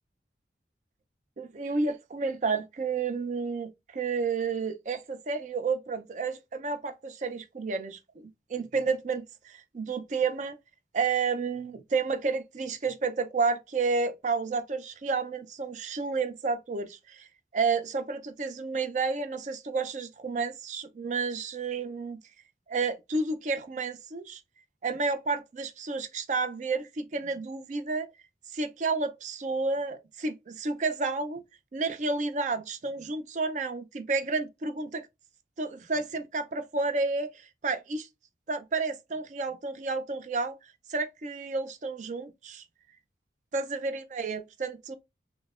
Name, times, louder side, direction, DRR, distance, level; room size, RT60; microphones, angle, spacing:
voice 1, 1.4-10.5 10.9-17.3 17.5-22.2 22.7-24.4 24.8-28.1 28.5-31.4 31.7-35.1 35.6-37.3 37.6-38.1 38.5-40.5 40.9-42.6 43.5-44.9, right 4 dB, 40° right, 0.4 m, -31 dB
5.4 x 2.1 x 2.4 m
head